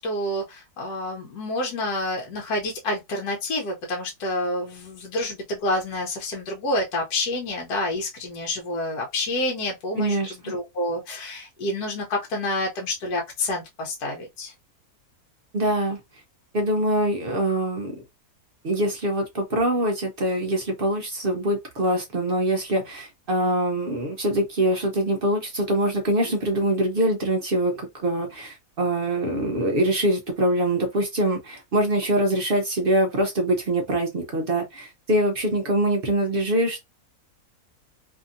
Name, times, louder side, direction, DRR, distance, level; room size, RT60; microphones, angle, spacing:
voice 1, 0.0-10.2 10.4-14.5, left 1 dB, 80° left, 1.2 m, -28 dB
voice 2, 10.0-10.5 15.5-16.0 16.5-17.9 18.6-36.8, right 1 dB, 60° right, 0.5 m, -24 dB
2.8 x 2.6 x 2.5 m
omnidirectional pair, 1.7 m